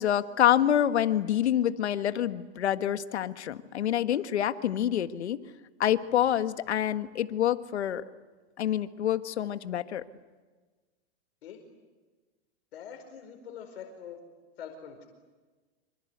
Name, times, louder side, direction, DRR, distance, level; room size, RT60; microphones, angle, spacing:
voice 1, 0.0-5.4 5.8-8.0 8.6-10.0, left 11 dB, 85° left, 10 dB, 1.7 m, -27 dB
voice 2, 12.7-14.2 14.6-15.1, left 8 dB, 65° left, 4 dB, 5.0 m, -44 dB
27.0 x 26.5 x 8.1 m, 1.3 s
supercardioid pair, 160°, 33 cm